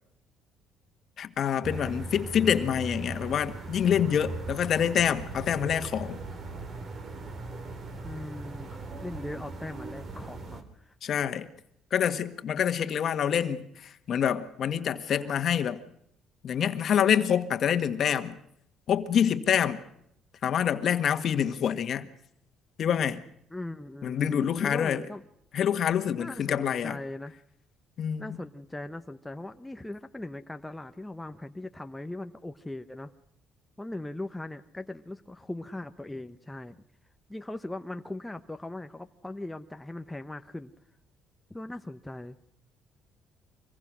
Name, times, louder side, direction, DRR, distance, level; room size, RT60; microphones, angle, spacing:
voice 1, 1.2-6.2 11.0-11.5 11.9-15.8 16.4-18.4 18.9-19.8 20.4-22.1 22.8-23.2 24.0-25.0 25.5-27.0 28.0-28.4, left 8 dB, 50° left, 1.6 m, -26 dB
sound 1, 1.6-10.6, right 3 dB, 45° right, 3.2 m, -39 dB
voice 2, 8.0-10.9 15.1-15.3 23.5-25.2 26.2-27.3 28.2-33.1 33.8-36.9 37.3-40.7 41.5-42.4, left 1 dB, 5° left, 0.9 m, -39 dB
25.0 x 21.5 x 6.3 m
cardioid pair, 125°, 0 cm